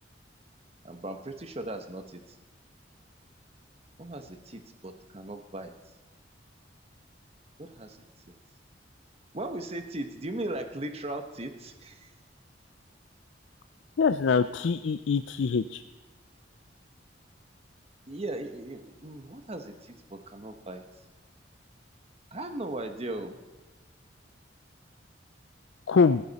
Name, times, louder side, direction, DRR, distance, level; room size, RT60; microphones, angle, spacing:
voice 1, 0.8-2.2 4.0-5.7 7.6-8.0 9.3-12.1 18.1-20.8 22.3-23.4, right 1 dB, 35° right, 7 dB, 1.2 m, -38 dB
voice 2, 14.0-15.8 25.9-26.2, left 5 dB, 80° left, 11 dB, 0.4 m, -24 dB
16.0 x 15.0 x 4.2 m, 1.2 s
head